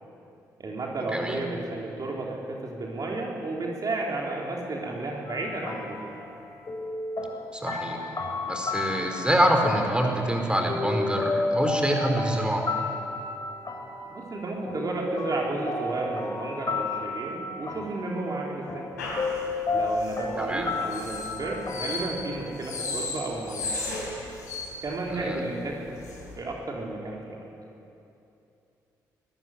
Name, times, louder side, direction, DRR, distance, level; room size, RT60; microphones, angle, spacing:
voice 1, 0.6-6.1 14.1-18.9 19.7-23.7 24.8-26.0 26.4-27.5, right 2 dB, 45° right, -1 dB, 3.7 m, -32 dB
sound 1, 5.3-22.5, left 3 dB, 40° left, 4.6 m, -32 dB
voice 2, 7.5-8.0 8.4-12.6 20.4-20.7 25.1-25.4, right 1 dB, 10° right, 3 dB, 4.4 m, -25 dB
sound 2, 19.0-26.4, left 2 dB, 85° left, 3.9 m, -36 dB
23.0 x 13.0 x 9.8 m, 2.8 s
hypercardioid pair, 40°, 9 cm